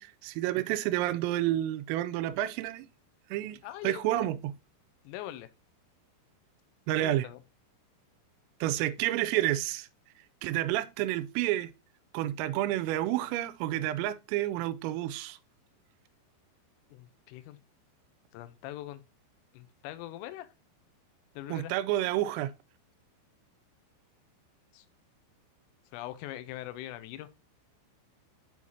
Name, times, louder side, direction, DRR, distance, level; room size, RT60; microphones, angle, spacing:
voice 1, 0.0-2.9 3.3-4.5 6.9-7.3 8.6-9.9 10.4-11.7 12.1-15.4 21.5-22.5, right 14 dB, 85° right, 3.2 m, -30 dB
voice 2, 3.6-4.2 5.1-5.5 7.0-7.4 16.9-17.6 18.3-19.0 19.5-20.5 21.4-21.7 24.7-24.8 25.9-27.3, left 14 dB, 85° left, 3.3 m, -42 dB
7.2 x 6.3 x 2.7 m
omnidirectional pair, 5.9 m